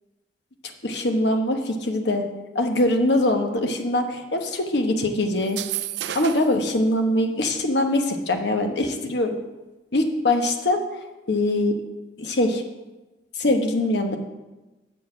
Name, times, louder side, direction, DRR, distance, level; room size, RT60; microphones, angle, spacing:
voice 1, 0.8-2.3 2.5-5.6 6.1-9.4 9.9-10.8 11.3-11.8 12.2-12.6 13.4-14.2, left 1 dB, 65° left, 5 dB, 1.0 m, -22 dB
sound 1, 5.4-6.6, right 12 dB, 65° right, 0.4 m, -31 dB
7.9 x 4.7 x 7.3 m, 1.1 s
head